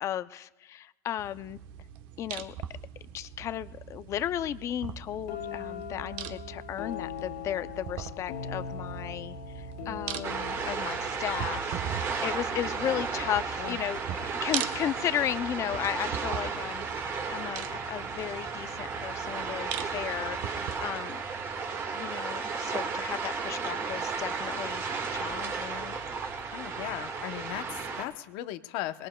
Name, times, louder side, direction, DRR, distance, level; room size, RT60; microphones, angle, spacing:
voice 1, 0.0-1.6 2.2-2.6 3.1-21.2 21.9-24.9 25.1-26.0, left 11 dB, 30° left, 15 dB, 0.4 m, -35 dB
sound 1, 1.2-20.8, right 9 dB, 55° right, 1.0 m, -41 dB
sound 2, 5.3-13.0, left 6 dB, 85° left, 3.3 m, -41 dB
sound 3, 10.2-28.0, right 5 dB, 30° right, 1.6 m, -34 dB
voice 2, 26.5-29.1, left 14 dB, 60° left, 12 dB, 0.8 m, -37 dB
23.5 x 21.5 x 2.2 m, 1.1 s
supercardioid pair, 140°, 9 cm